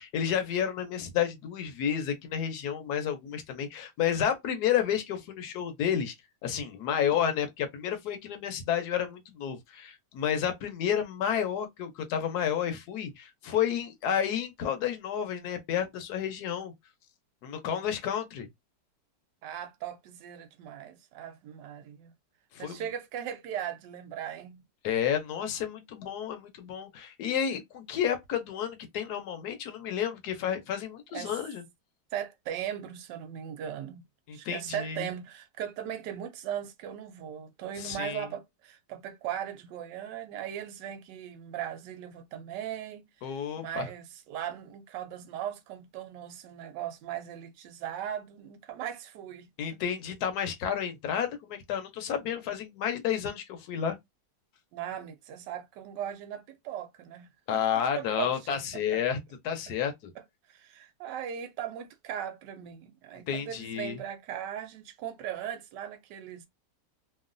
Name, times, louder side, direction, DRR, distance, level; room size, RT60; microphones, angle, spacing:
voice 1, 0.0-6.1 6.4-16.7 17.4-18.5 22.5-22.8 24.8-31.6 34.3-35.1 37.8-38.3 43.2-43.9 49.6-54.0 57.5-59.2 59.4-60.1 63.3-64.0, left 9 dB, 70° left, 1.2 m, -31 dB
voice 2, 19.4-22.1 22.6-24.6 31.1-31.4 32.1-34.0 34.3-49.5 54.7-57.6 57.9-59.0 60.5-66.5, right 10 dB, 80° right, 1.2 m, -38 dB
3.0 x 2.3 x 2.5 m
omnidirectional pair, 1.9 m